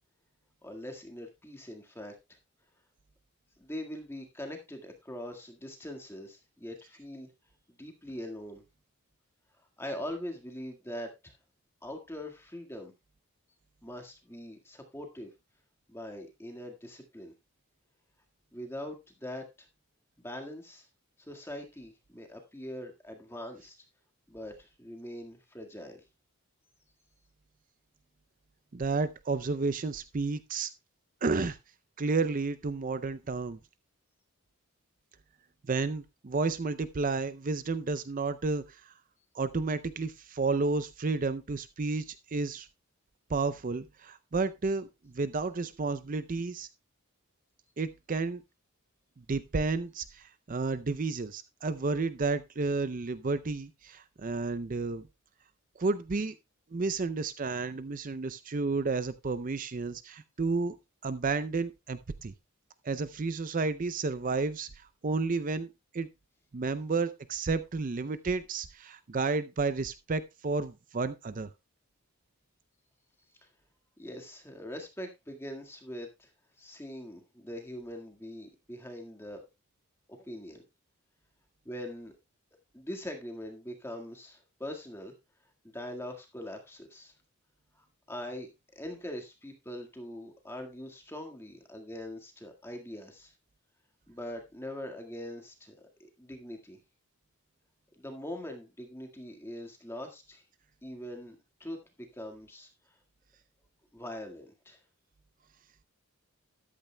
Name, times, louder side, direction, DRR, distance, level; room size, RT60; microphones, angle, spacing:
voice 1, 0.6-2.4 3.6-7.3 7.8-8.6 9.8-11.3 11.8-12.9 13.8-15.3 15.9-17.3 18.5-19.7 20.2-20.8 21.2-23.8 24.3-26.0 73.4-73.5 74.0-76.3 76.6-79.4 80.2-80.6 81.6-82.1 82.7-85.1 85.7-87.1 88.1-88.5 88.7-93.3 94.1-96.8 98.0-100.4 100.8-101.8 102.1-103.0 103.9-104.8, left 1 dB, 10° left, 3 dB, 1.7 m, -42 dB
voice 2, 28.7-30.7 31.2-31.6 32.0-33.6 35.6-38.9 39.3-42.7 43.3-46.7 47.8-48.4 49.2-55.1 55.8-56.4 56.7-60.8 61.0-62.3 62.8-66.1 66.5-71.5, right 3 dB, 35° right, 14 dB, 0.5 m, -31 dB
13.5 x 12.0 x 2.2 m, 0.24 s
head